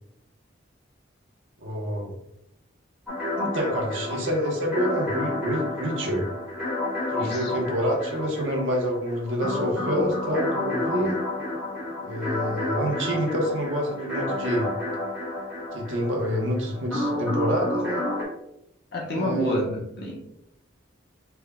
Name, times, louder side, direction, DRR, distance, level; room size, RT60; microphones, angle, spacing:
voice 1, 1.6-2.2 3.4-6.2 7.1-11.2 12.0-14.7 15.7-18.0 19.1-19.7, equal, 85° right, 0 dB, 0.9 m, -27 dB
sound 1, 3.1-18.2, left 2 dB, 5° right, 1.1 m, -30 dB
voice 2, 7.2-7.5 18.9-20.2, equal, 55° left, -2 dB, 0.9 m, -28 dB
3.5 x 2.2 x 3.4 m, 0.79 s
head